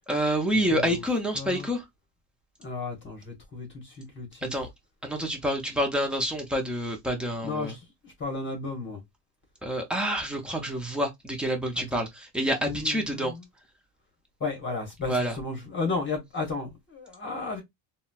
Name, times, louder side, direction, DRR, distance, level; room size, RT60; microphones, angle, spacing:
voice 1, 0.1-1.8 4.4-4.7 5.0-7.7 9.6-13.3 15.1-15.4, equal, ahead, 0.3 m, -28 dB
voice 2, 0.7-1.0 1.3-1.7 2.6-4.5 7.4-9.0 11.8-12.0 12.7-13.4 14.4-17.6, left 3 dB, 25° left, 0.9 m, -34 dB
3.9 x 2.1 x 2.2 m
cardioid pair, 140°, 49 cm